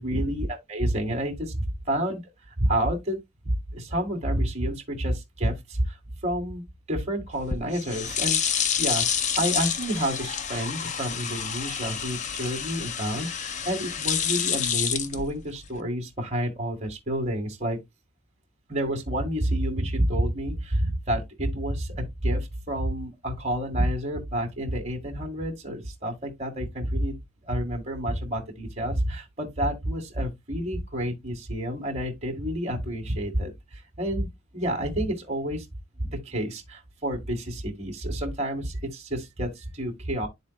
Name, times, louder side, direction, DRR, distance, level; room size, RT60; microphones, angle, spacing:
voice 1, 0.0-2.2 2.6-3.2 3.7-6.0 6.2-9.1 9.4-17.8 18.7-27.2 27.4-34.3 34.5-35.6 36.0-40.3, right 1 dB, 35° right, 1.8 m, -29 dB
sound 1, 7.3-15.8, left 8 dB, 35° left, 0.6 m, -28 dB
12.0 x 4.1 x 2.3 m
head